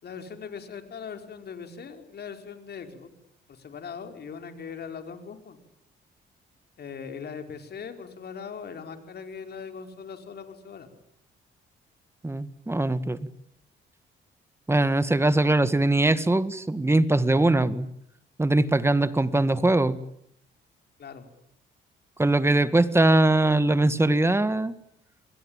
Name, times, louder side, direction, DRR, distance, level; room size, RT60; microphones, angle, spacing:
voice 1, 0.0-3.1 3.5-5.6 6.8-10.9 21.0-21.3, left 6 dB, 55° left, 6 dB, 5.0 m, -40 dB
voice 2, 12.2-13.2 14.7-17.9 18.4-20.0 22.2-24.7, right 2 dB, 15° right, 13 dB, 1.8 m, -21 dB
28.0 x 21.5 x 9.1 m, 0.73 s
cardioid pair, 90°, 20 cm